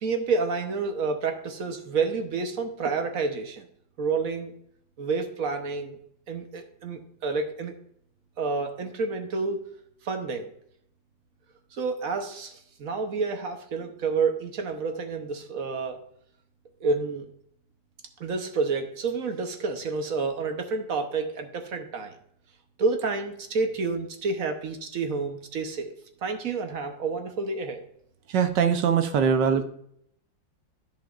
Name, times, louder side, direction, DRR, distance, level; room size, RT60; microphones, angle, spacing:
voice 1, 0.0-3.6 4.0-4.5 5.0-6.0 6.3-7.7 8.4-9.6 10.0-10.5 11.7-16.0 16.8-17.3 18.2-22.1 22.8-25.9 26.2-27.8, right 4 dB, 55° right, 6 dB, 1.2 m, -29 dB
voice 2, 28.3-29.6, right 7 dB, 70° right, 8 dB, 1.4 m, -22 dB
13.5 x 5.2 x 2.5 m, 0.69 s
omnidirectional pair, 2.1 m